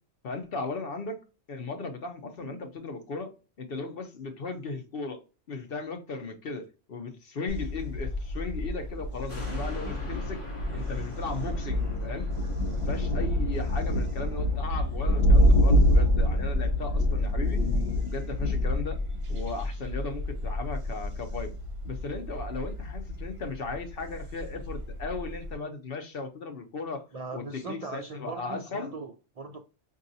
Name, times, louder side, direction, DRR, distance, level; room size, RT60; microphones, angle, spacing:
voice 1, 0.2-1.2 1.5-3.3 3.6-5.2 5.5-10.4 10.7-12.3 12.7-17.6 18.0-19.0 19.3-21.5 21.8-28.9, left 3 dB, 55° left, 0.9 m, -37 dB
Thunder, 7.5-25.5, left 1 dB, 30° right, 0.9 m, -27 dB
sound 1, 9.3-15.9 16.4-16.5, equal, 25° left, 1.2 m, -47 dB
voice 2, 27.1-29.6, right 3 dB, 50° right, 0.4 m, -39 dB
5.5 x 2.6 x 2.6 m
omnidirectional pair, 1.3 m